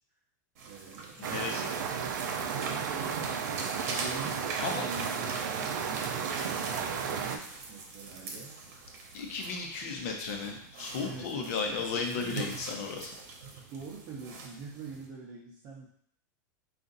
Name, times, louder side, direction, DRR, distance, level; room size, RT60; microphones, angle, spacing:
sound 1, 0.5-15.1, right 3 dB, 55° right, 1.0 m, -43 dB
voice 1, 0.6-1.5 2.3-3.2 3.8-4.5 4.8-8.6 11.0-12.2 13.7-15.9, right 4 dB, 30° right, -6 dB, 0.7 m, -46 dB
voice 2, 1.2-1.6 4.6-4.9 9.1-13.1, left 4 dB, 50° left, 2 dB, 0.8 m, -34 dB
sound 2, 1.2-7.4, right 6 dB, 85° right, 0.5 m, -33 dB
3.8 x 2.5 x 3.9 m, 0.65 s
supercardioid pair, 170°, 10 cm